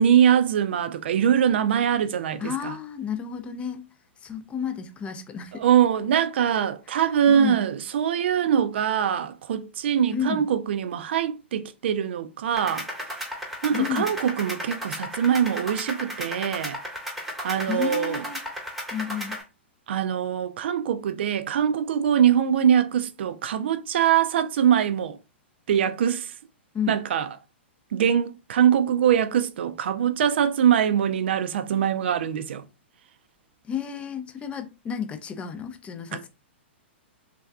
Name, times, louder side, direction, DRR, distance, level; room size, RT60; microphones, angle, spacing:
voice 1, 0.0-2.8 5.5-12.9 13.6-16.8 17.4-18.2 19.9-25.2 25.7-26.3 26.9-27.3 27.9-32.6 36.1-36.2, right 9 dB, 65° right, 0.3 m, -23 dB
voice 2, 2.4-3.8 4.2-5.7 6.9-7.7 10.1-10.5 13.7-14.1 17.7-18.4 18.9-19.4 26.7-27.0 33.6-36.3, left 8 dB, 20° left, 0.4 m, -31 dB
sound 1, 12.6-19.4, equal, ahead, 0.9 m, -35 dB
3.3 x 2.3 x 2.3 m
hypercardioid pair, 115°, 6 cm